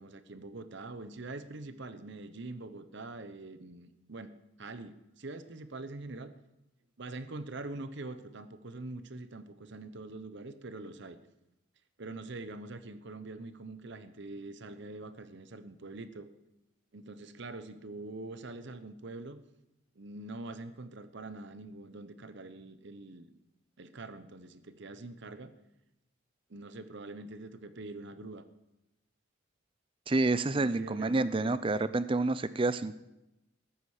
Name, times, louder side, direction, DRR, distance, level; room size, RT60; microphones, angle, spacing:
voice 1, 0.0-4.3 4.6-6.3 7.0-11.2 12.0-16.3 16.9-19.4 20.0-23.3 23.8-25.5 26.5-28.4 30.6-31.6, right 2 dB, 55° right, 11 dB, 0.8 m, -44 dB
voice 2, 30.1-33.0, right 2 dB, 25° right, 15 dB, 0.4 m, -28 dB
14.0 x 13.0 x 4.9 m, 0.93 s
head